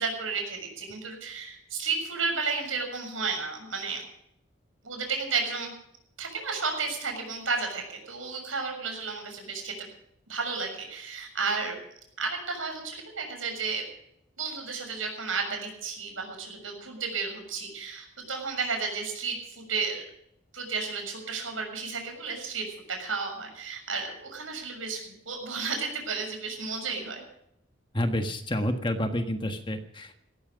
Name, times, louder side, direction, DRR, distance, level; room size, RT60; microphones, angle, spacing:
voice 1, 0.0-4.0 4.8-5.7 6.2-9.9 10.3-11.8 12.2-13.8 14.4-20.0 20.5-27.2, right 4 dB, 80° right, 3 dB, 6.7 m, -32 dB
voice 2, 27.9-30.1, left 1 dB, 25° left, 6 dB, 1.5 m, -29 dB
17.0 x 15.0 x 5.3 m, 0.73 s
head